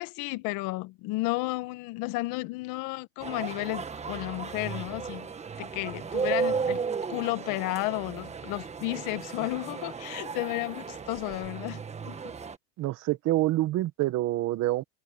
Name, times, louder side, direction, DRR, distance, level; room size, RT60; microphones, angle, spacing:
voice 1, 0.0-5.3 5.6-6.8 7.1-12.2, left 22 dB, 60° left, 1.6 m, -33 dB
sound 1, 3.2-12.6, right 5 dB, 20° right, 1.6 m, -34 dB
voice 2, 12.8-14.8, right 16 dB, 50° right, 1.6 m, -27 dB
supercardioid pair, 115°, 35 cm